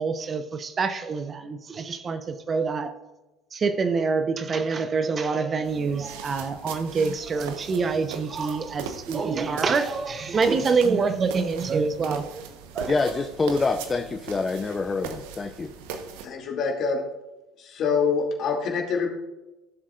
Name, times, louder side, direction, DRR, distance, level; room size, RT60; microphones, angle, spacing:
voice 1, 0.0-2.9 3.5-12.4 12.7-13.2, right 4 dB, 35° right, 9 dB, 0.8 m, -26 dB
sound 1, 5.6-16.3, right 6 dB, 70° right, 1.0 m, -40 dB
voice 2, 12.9-15.7, left 3 dB, 25° left, 7 dB, 0.7 m, -26 dB
voice 3, 16.2-17.0 17.6-19.1, left 5 dB, 50° left, 1 dB, 2.5 m, -25 dB
16.0 x 7.3 x 2.5 m, 1.0 s
hypercardioid pair, 65°, 0 cm